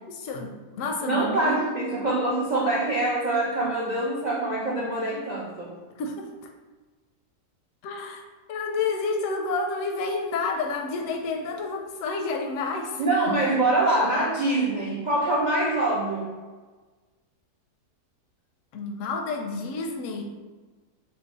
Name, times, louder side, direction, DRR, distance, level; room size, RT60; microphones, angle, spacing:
voice 1, 0.1-1.6 6.0-6.5 7.8-8.2 8.5-13.0 18.7-20.2, left 3 dB, 70° left, 3 dB, 0.8 m, -30 dB
voice 2, 1.0-5.7 13.0-16.3, right 2 dB, 70° right, -6 dB, 0.4 m, -24 dB
3.9 x 2.3 x 4.0 m, 1.3 s
omnidirectional pair, 1.7 m